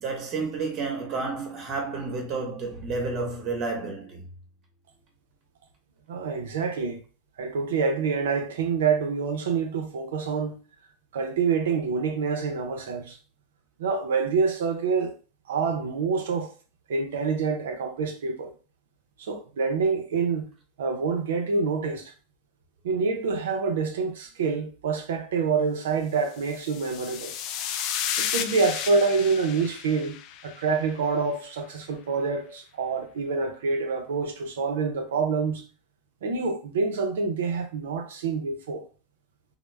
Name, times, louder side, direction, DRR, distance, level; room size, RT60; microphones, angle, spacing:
voice 1, 0.0-4.3, right 3 dB, 40° right, 0.9 m, -31 dB
voice 2, 6.1-7.0 7.4-10.6 11.1-13.2 13.8-15.1 15.5-16.5 16.9-18.5 19.2-20.4 20.8-22.1 22.8-27.3 28.2-30.2 30.4-35.7 36.2-38.9, right 5 dB, 85° right, 0.5 m, -27 dB
sound 1, 26.4-30.9, left 9 dB, 55° left, 0.3 m, -33 dB
2.2 x 2.0 x 3.1 m
supercardioid pair, 115°, 0 cm